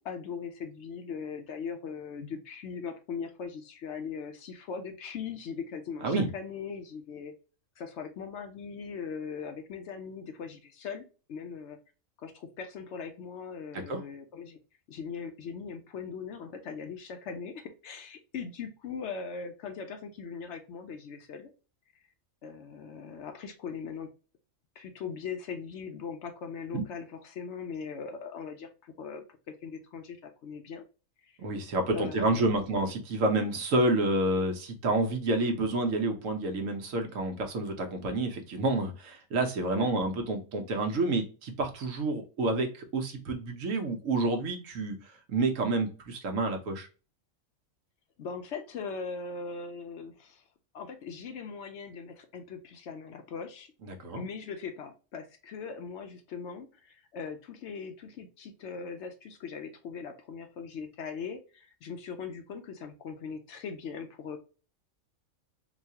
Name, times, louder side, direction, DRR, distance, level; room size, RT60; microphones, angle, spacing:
voice 1, 0.0-7.3 7.8-11.0 11.3-11.8 12.2-14.6 14.9-21.5 22.4-24.1 24.8-30.8 31.2-31.4 31.9-32.7 39.7-39.9 48.2-50.4 50.7-53.7 54.1-64.4, left 6 dB, 65° left, 6 dB, 0.8 m, -40 dB
voice 2, 31.4-46.9 53.9-54.2, right 2 dB, 75° right, 4 dB, 1.2 m, -29 dB
4.0 x 2.3 x 2.7 m, 0.34 s
omnidirectional pair, 1.4 m